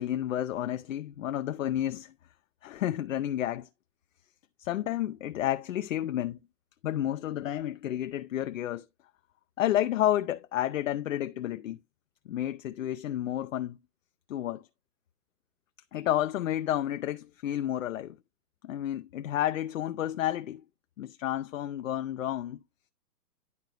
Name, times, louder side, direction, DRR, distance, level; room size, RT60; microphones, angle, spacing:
voice 1, 0.0-2.1 2.6-3.7 4.6-6.4 6.8-8.9 9.6-11.8 12.3-13.8 14.3-14.6 15.9-18.2 18.6-20.6 21.0-22.6, left 12 dB, 55° left, 0.5 m, -31 dB
11.0 x 4.4 x 3.0 m
figure-of-eight pair, 125°, 49 cm